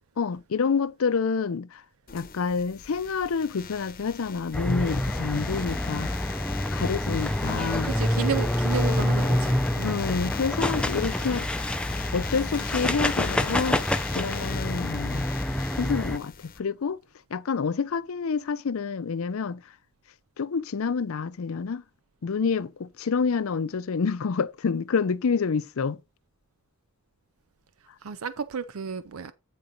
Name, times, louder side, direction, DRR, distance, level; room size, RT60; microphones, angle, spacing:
voice 1, 0.2-1.8 2.1-6.1 6.7-7.9 9.8-11.5 12.1-13.8 14.1-15.3 15.8-17.0 17.3-19.6 20.4-21.8 22.2-26.0, left 5 dB, 70° left, 0.5 m, -28 dB
sound 1, 2.1-16.6, left 7 dB, 40° left, 0.8 m, -40 dB
sound 2, 4.5-16.2, left 1 dB, 5° left, 0.4 m, -27 dB
voice 2, 7.8-10.0 28.0-29.3, right 6 dB, 75° right, 0.5 m, -32 dB
9.1 x 4.0 x 5.1 m
head